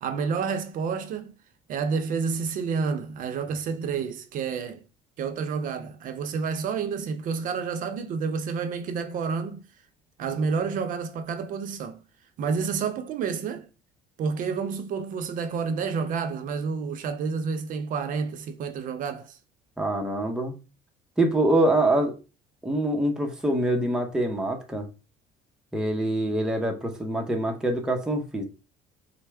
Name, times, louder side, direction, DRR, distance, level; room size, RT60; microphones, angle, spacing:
voice 1, 0.0-1.3 1.7-4.8 5.2-9.6 10.2-12.0 12.4-13.6 14.2-19.4, right 5 dB, 55° right, 0.6 m, -29 dB
voice 2, 19.8-20.6 21.2-22.1 22.6-24.9 25.7-28.5, right 1 dB, 5° right, 0.6 m, -25 dB
4.3 x 2.0 x 3.3 m
cardioid pair, 115°, 17 cm